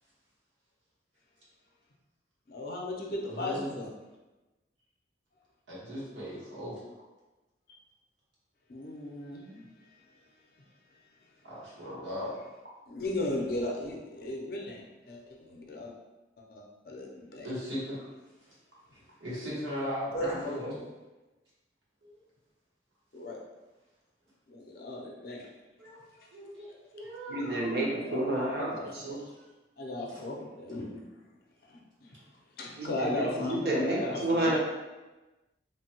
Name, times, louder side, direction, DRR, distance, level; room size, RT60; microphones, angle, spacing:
voice 1, 2.5-3.9 8.7-10.1 12.9-15.9 16.4-17.5 20.1-20.6 23.1-23.4 24.5-25.5 26.2-26.3 27.9-29.3 29.8-31.0 31.7-32.2 32.6-34.6, left 1 dB, 50° left, -1 dB, 0.5 m, -37 dB
voice 2, 3.3-3.7 5.7-6.8 11.4-12.4 17.4-18.0 19.2-20.8 22.0-22.2 25.8-26.0 26.3-27.7 30.1-30.2, equal, 85° right, -8 dB, 1.2 m, -38 dB
voice 3, 27.3-29.2 32.8-34.6, right 1 dB, 55° right, -4 dB, 0.7 m, -30 dB
3.0 x 2.2 x 2.9 m, 1.1 s
head